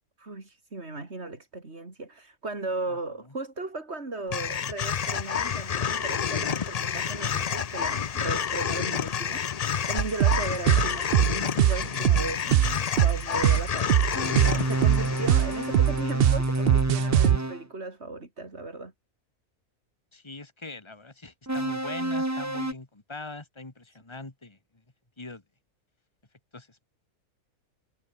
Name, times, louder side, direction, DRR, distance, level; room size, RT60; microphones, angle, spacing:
voice 1, 0.2-14.1 14.5-18.9, right 2 dB, 45° right, 3.9 m, -36 dB
sound 1, 4.3-16.6, left 7 dB, 75° left, 0.3 m, -30 dB
sound 2, 10.0-17.4, right 11 dB, 65° right, 0.6 m, -21 dB
sound 3, 14.1-17.6 21.5-22.7, right 1 dB, 10° right, 1.8 m, -29 dB
voice 2, 20.1-24.6 25.2-25.4 26.5-26.8, left 2 dB, 20° left, 2.2 m, -41 dB
omnidirectional pair, 1.5 m